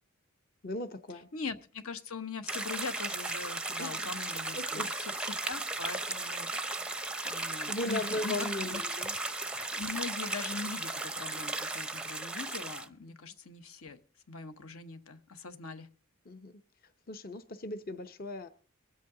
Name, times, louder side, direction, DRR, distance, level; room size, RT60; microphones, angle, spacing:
voice 1, 0.6-1.3 3.8-4.1 4.5-4.9 7.7-9.1 13.2-13.3 16.3-16.5 17.1-18.5, left 2 dB, 45° left, 8 dB, 0.7 m, -37 dB
voice 2, 1.3-6.7 7.2-8.8 9.8-14.0 14.3-15.9, left 4 dB, 80° left, 9 dB, 1.1 m, -41 dB
sound 1, 2.5-12.9, right 2 dB, 5° right, 0.5 m, -36 dB
23.0 x 8.3 x 3.8 m, 0.41 s
head